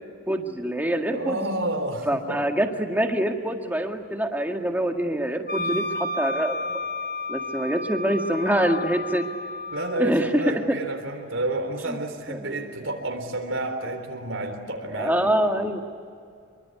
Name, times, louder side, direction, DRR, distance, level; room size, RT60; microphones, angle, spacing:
voice 1, 0.3-1.4 2.1-6.8 7.3-9.3 10.0-10.8 11.9-12.0 12.3-12.6 14.9-15.8, right 1 dB, 10° right, 3 dB, 1.9 m, -25 dB
voice 2, 1.1-2.5 9.7-15.7, right 2 dB, 65° right, 4 dB, 3.6 m, -30 dB
Wind instrument woodwind instrument, 5.5-10.0, left 2 dB, 40° left, 1.6 m, -31 dB
26.0 x 24.0 x 9.6 m, 2.3 s
head